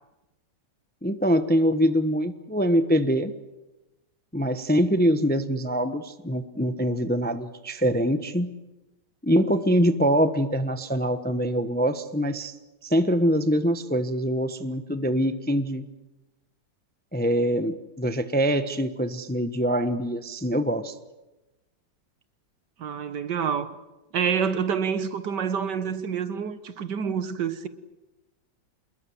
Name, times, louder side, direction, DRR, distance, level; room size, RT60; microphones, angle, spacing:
voice 1, 1.0-3.3 4.3-8.5 9.2-12.6 12.8-15.9 17.1-20.9, equal, 5° left, 0.8 m, -24 dB
voice 2, 22.8-23.7 24.1-27.7, right 7 dB, 65° right, 1.8 m, -27 dB
27.5 x 21.0 x 7.9 m
omnidirectional pair, 2.0 m